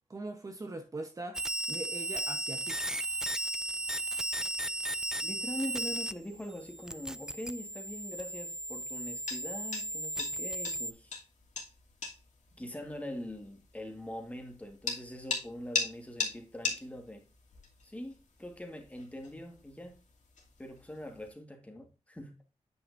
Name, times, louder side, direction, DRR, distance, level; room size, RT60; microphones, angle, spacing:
voice 1, 0.1-2.8, right 2 dB, 25° right, 0.9 m, -41 dB
sound 1, 1.3-6.1 6.4-10.9, right 1 dB, 5° right, 0.4 m, -35 dB
sound 2, 3.0-21.3, left 4 dB, 90° left, 2.7 m, -43 dB
voice 2, 5.2-11.2 12.6-17.2 17.8-20.0 20.6-22.4, left 1 dB, 10° left, 1.6 m, -43 dB
9.6 x 5.7 x 2.6 m
wide cardioid pair, 155°, 12 cm